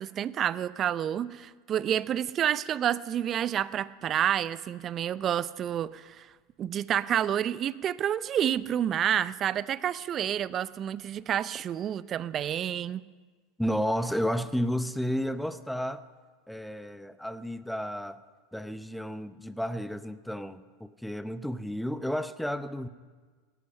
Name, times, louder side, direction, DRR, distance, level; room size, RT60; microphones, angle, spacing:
voice 1, 0.0-6.3 6.6-13.0, right 10 dB, 35° right, 18 dB, 0.5 m, -29 dB
voice 2, 13.6-16.0 16.5-18.2 18.5-22.9, equal, ahead, 13 dB, 0.8 m, -32 dB
18.5 x 13.5 x 5.5 m, 1.4 s
figure-of-eight pair, 80°, 0 cm